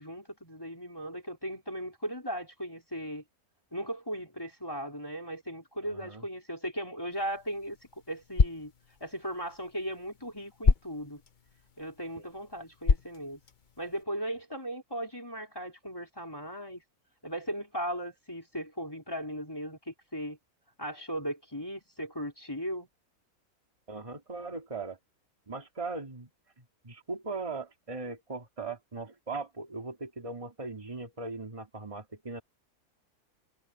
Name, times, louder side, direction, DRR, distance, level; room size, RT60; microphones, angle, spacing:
voice 1, 0.0-3.2 3.7-7.8 8.1-8.7 9.0-11.2 11.8-13.4 13.8-16.8 17.2-20.4 20.8-22.9, equal, 15° left, 4.1 m, -37 dB
voice 2, 5.9-6.2 12.1-12.2 23.9-25.0 25.5-26.3 26.6-32.4, right 3 dB, 20° right, 2.4 m, -39 dB
sound 1, 7.1-14.0, left 5 dB, 40° left, 0.9 m, -32 dB
omnidirectional pair, 1.6 m